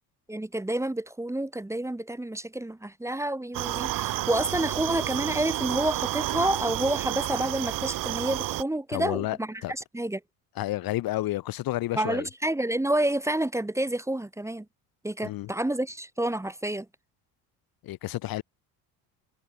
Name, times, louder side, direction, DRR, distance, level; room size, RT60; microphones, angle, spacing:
voice 1, 0.3-10.2 11.9-14.6 15.0-16.9, right 1 dB, 5° right, 1.6 m, -29 dB
sound 1, 3.5-8.6, right 15 dB, 55° right, 1.0 m, -30 dB
voice 2, 8.9-9.4 9.6-9.7 10.6-12.3 15.2-15.5 17.8-18.4, left 16 dB, 60° left, 1.6 m, -30 dB
supercardioid pair, 90°, 40 cm